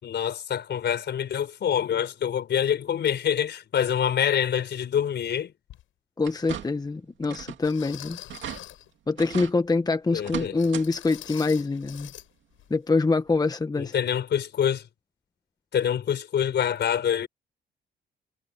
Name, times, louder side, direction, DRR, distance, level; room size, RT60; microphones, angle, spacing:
voice 1, 0.0-5.5 10.1-10.5 13.8-14.9 15.7-17.3, left 9 dB, 60° left, 4.7 m, -26 dB
sound 1, 5.7-5.8 6.5-6.6 7.6-8.9 10.6-12.3 12.6-12.7 13.2-13.3, left 14 dB, 85° left, 7.1 m, -44 dB
voice 2, 6.2-8.2 9.1-12.1 12.7-13.9, left 3 dB, 20° left, 1.0 m, -25 dB
sound 2, 6.2-6.9 7.2-7.7 8.0-8.1 8.3-8.6 9.2-9.5 10.2-10.9 11.2-11.3 12.7-12.8 13.3-13.4, right 10 dB, 70° right, 2.5 m, -37 dB
cardioid pair, 90°, 20 cm